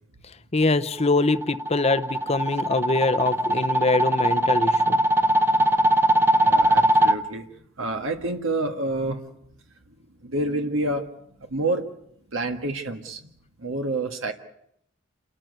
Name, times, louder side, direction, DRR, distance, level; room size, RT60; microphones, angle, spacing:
voice 1, 0.5-5.0, left 3 dB, 30° left, 12 dB, 0.9 m, -23 dB
sound 1, 1.0-7.1, right 1 dB, 10° right, 0.8 m, -20 dB
voice 2, 5.0-5.7 6.3-7.5 7.8-9.2 10.2-11.0 11.5-11.9 12.3-13.3 13.6-14.3, right 2 dB, 70° right, 5 dB, 1.8 m, -28 dB
29.0 x 13.5 x 9.5 m, 0.75 s
head